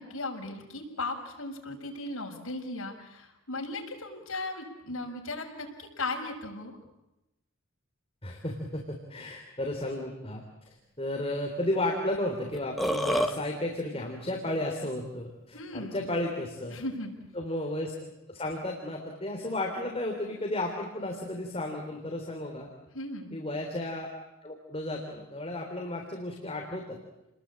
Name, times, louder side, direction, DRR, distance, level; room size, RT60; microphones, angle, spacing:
voice 1, 0.0-6.8 15.5-16.1 16.7-17.1 22.9-23.4, left 2 dB, 75° left, 1 dB, 6.8 m, -37 dB
voice 2, 8.2-16.8 17.4-17.9 18.3-22.7 23.3-24.1 24.4-27.0, left 1 dB, 25° left, 1 dB, 3.5 m, -33 dB
Burping eructation, 12.5-13.3, equal, ahead, 1.9 m, -27 dB
29.5 x 21.0 x 8.8 m, 0.94 s
head